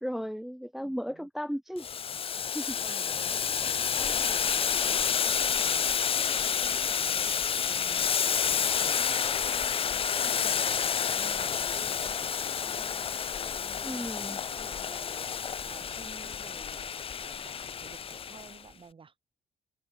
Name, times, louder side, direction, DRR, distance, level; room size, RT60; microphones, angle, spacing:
voice 1, 0.0-1.9 2.5-2.8 13.8-14.4, equal, ahead, 0.7 m, -35 dB
voice 2, 0.8-1.3 2.8-4.4 4.8-7.4 7.6-12.2 12.6-19.1, right 5 dB, 30° right, 7.6 m, -51 dB
Boiling, 1.8-18.6, left 7 dB, 35° left, 0.7 m, -29 dB
sound 1, 3.6-5.7 6.1-8.3 8.6-11.1 11.3-14.2, left 10 dB, 55° left, 5.0 m, -53 dB
open air
cardioid pair, 110°, 17 cm